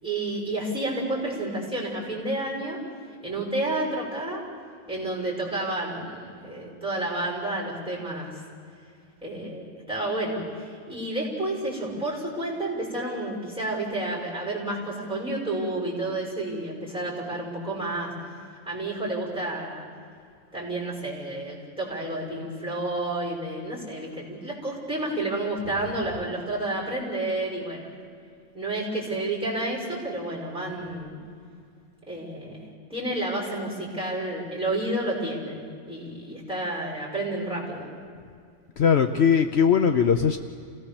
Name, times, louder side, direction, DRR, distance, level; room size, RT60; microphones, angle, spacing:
voice 1, 0.0-2.8 3.2-4.4 4.9-8.4 9.2-18.1 18.7-19.8 20.5-27.9 28.5-31.1 32.1-37.9, right 2 dB, 5° right, -3 dB, 6.2 m, -30 dB
voice 2, 38.8-40.4, left 7 dB, 65° left, 7 dB, 1.0 m, -20 dB
28.0 x 18.0 x 7.1 m, 2.3 s
omnidirectional pair, 1.2 m